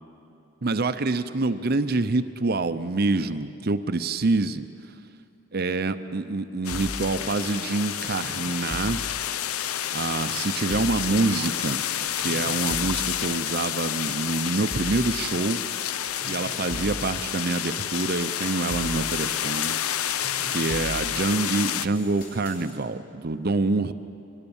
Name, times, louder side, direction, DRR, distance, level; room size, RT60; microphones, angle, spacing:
voice 1, 0.6-4.7 5.5-9.0 9.9-11.8 12.2-15.6 16.3-19.7 20.5-23.9, right 3 dB, 45° right, 11 dB, 0.6 m, -26 dB
sound 1, 6.6-21.9, left 10 dB, 80° left, 0.6 m, -29 dB
sound 2, 6.7-22.7, left 1 dB, 45° left, 4.3 m, -41 dB
24.0 x 20.5 x 7.1 m, 2.7 s
head